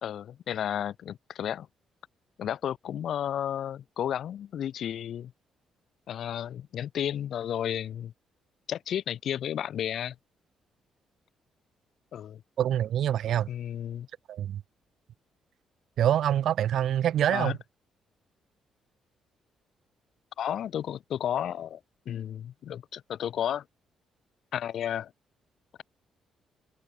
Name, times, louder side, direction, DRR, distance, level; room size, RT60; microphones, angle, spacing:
voice 1, 0.0-1.7 2.4-5.3 6.1-8.1 8.7-10.1 12.1-12.4 13.5-14.1 17.3-17.6 20.4-21.8 22.0-23.6 24.5-25.1, left 10 dB, 65° left, 1.7 m, -32 dB
voice 2, 12.6-13.5 14.3-14.6 16.0-17.5, right 10 dB, 70° right, 0.3 m, -25 dB
cardioid pair, 90°, 0 cm